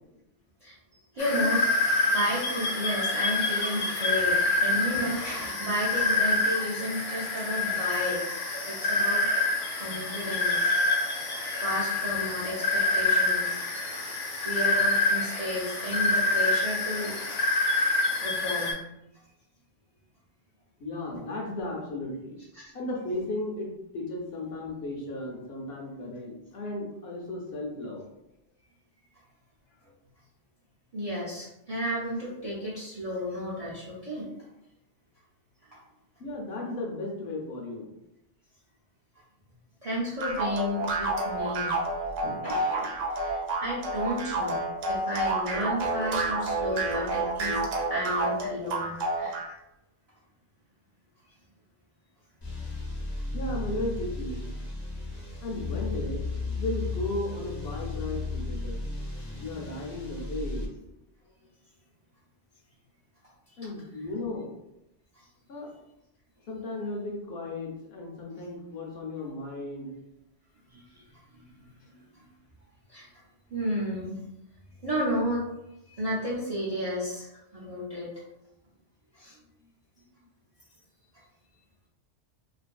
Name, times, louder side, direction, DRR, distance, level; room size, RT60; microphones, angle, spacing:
voice 1, 1.1-8.4 8.7-9.2 9.8-10.6 11.6-13.6 14.4-17.1 18.2-18.8 22.5-22.7 30.9-34.3 39.8-41.8 42.2-47.6 47.9-49.4 65.1-65.2 70.7-72.2 72.9-73.1 73.5-74.2 74.8-75.5 75.9-78.1 79.1-79.4, equal, 45° right, -6 dB, 0.5 m, -33 dB
sound 1, 1.2-18.7, left 2 dB, 90° left, 1.0 m, -27 dB
voice 2, 20.8-22.4 22.7-28.0 36.2-37.9 53.3-54.4 55.4-56.2 56.6-58.8 59.4-60.7 63.6-64.5 65.5-65.7 66.5-69.9, left 2 dB, 65° left, -1 dB, 0.8 m, -35 dB
sound 2, 40.2-49.5, right 2 dB, 80° right, 0.9 m, -29 dB
sound 3, 52.4-60.7, left 3 dB, 30° left, 0.4 m, -34 dB
2.6 x 2.5 x 2.2 m, 0.88 s
omnidirectional pair, 1.2 m